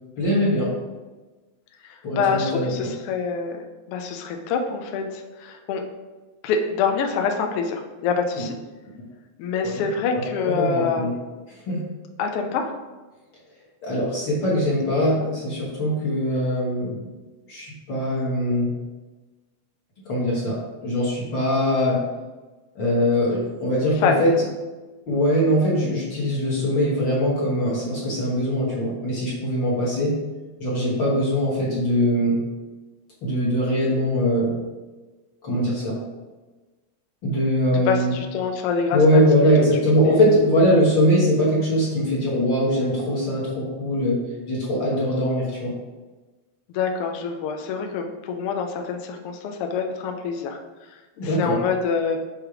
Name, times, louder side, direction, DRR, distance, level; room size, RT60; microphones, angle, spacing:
voice 1, 0.2-0.7 2.0-2.7 9.6-9.8 10.5-11.1 11.7-11.8 13.8-17.0 17.5-18.7 20.1-22.0 22.7-24.3 25.1-30.2 30.6-32.4 33.2-34.6 35.4-35.9 37.2-38.1 38.9-44.2 44.5-45.7 51.2-51.5, equal, 50° left, -6 dB, 1.5 m, -21 dB
voice 2, 1.8-3.6 3.9-5.8 6.4-8.5 9.4-11.2 12.2-12.8 23.9-24.3 37.7-39.5 40.0-40.3 46.7-50.6 50.9-52.2, left 5 dB, 90° left, 4 dB, 1.2 m, -26 dB
6.4 x 3.2 x 4.8 m, 1.2 s
omnidirectional pair, 3.4 m